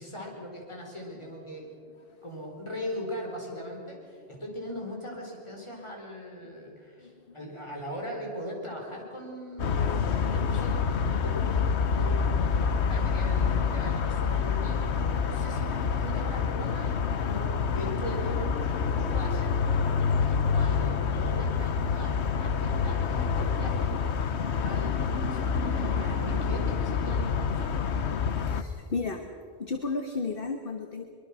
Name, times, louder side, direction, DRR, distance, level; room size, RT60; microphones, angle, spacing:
voice 1, 0.0-1.7 2.2-23.9 24.6-27.8, left 1 dB, 25° left, -1 dB, 4.7 m, -40 dB
voice 2, 7.0-7.3 17.2-17.6 28.3-29.2 29.6-31.0, left 4 dB, 55° left, 5 dB, 1.5 m, -34 dB
sound 1, 9.6-28.6, left 6 dB, 75° left, 1.2 m, -27 dB
23.5 x 23.0 x 6.2 m, 2.3 s
omnidirectional pair, 1.1 m